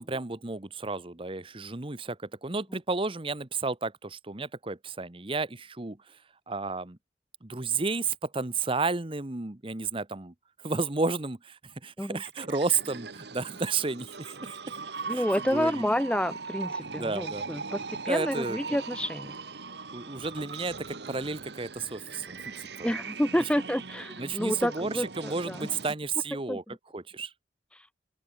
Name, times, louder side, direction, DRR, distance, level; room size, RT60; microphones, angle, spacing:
voice 1, 0.0-6.2 6.5-7.0 7.4-14.8 15.1-15.8 16.9-17.5 18.1-18.8 19.9-22.9 24.2-26.6 26.9-27.3, right 4 dB, 30° right, 1.1 m, -32 dB
sound 1, 12.2-25.9, right 4 dB, 70° right, 1.6 m, -40 dB
voice 2, 15.1-19.4 22.8-25.7 26.5-26.7, equal, 5° left, 1.7 m, -29 dB
open air
head